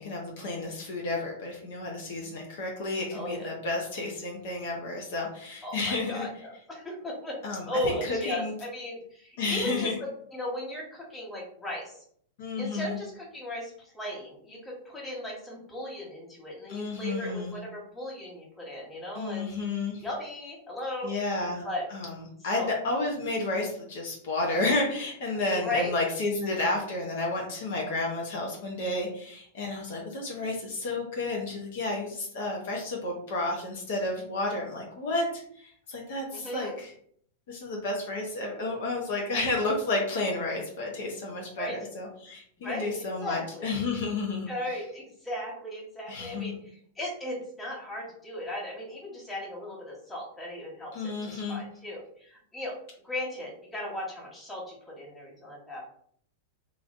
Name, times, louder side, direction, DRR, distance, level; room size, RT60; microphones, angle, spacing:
voice 1, 0.0-6.3 7.4-8.5 9.4-10.0 12.4-13.0 16.7-17.6 19.1-20.0 21.0-21.6 21.9-36.9 37.5-44.5 46.1-46.6 50.9-51.6, left 2 dB, 65° left, -1 dB, 0.8 m, -31 dB
voice 2, 3.1-3.5 5.6-9.9 10.3-12.0 12.6-19.5 20.0-21.1 21.6-21.8 22.5-22.7 25.5-25.9 36.3-36.7 41.6-41.8 42.6-43.7 44.5-46.5 46.9-52.7 53.0-55.8, left 1 dB, 15° left, -4 dB, 1.4 m, -36 dB
3.1 x 2.5 x 2.5 m, 0.64 s
hypercardioid pair, 110°, 0 cm